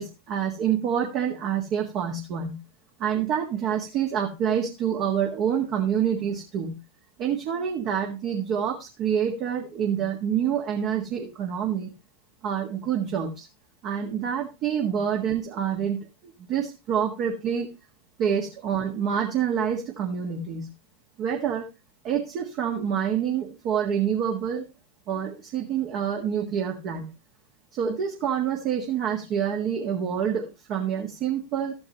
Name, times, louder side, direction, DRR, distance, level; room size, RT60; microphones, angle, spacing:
voice 1, 0.0-2.6 3.0-6.8 7.2-11.9 12.4-13.5 13.8-16.1 16.5-17.7 18.2-20.7 21.2-21.7 22.0-24.7 25.1-27.1 27.7-31.7, right 8 dB, 40° right, 1 dB, 1.6 m, -27 dB
13.5 x 8.9 x 3.0 m, 0.27 s
figure-of-eight pair, 90°, 0 cm